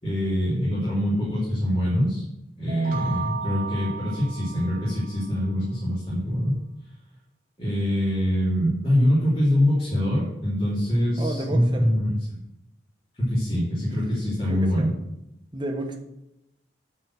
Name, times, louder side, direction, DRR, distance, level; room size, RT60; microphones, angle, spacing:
voice 1, 0.0-2.2 2.6-6.6 7.6-12.1 13.1-14.9, equal, 30° left, -7 dB, 2.8 m, -24 dB
Celesta Chime, 2.7-5.4, right 5 dB, 45° right, 1.2 m, -35 dB
voice 2, 11.2-11.9 14.5-15.0 15.5-15.9, right 1 dB, 25° right, 3 dB, 1.1 m, -31 dB
8.9 x 4.7 x 7.6 m, 0.88 s
head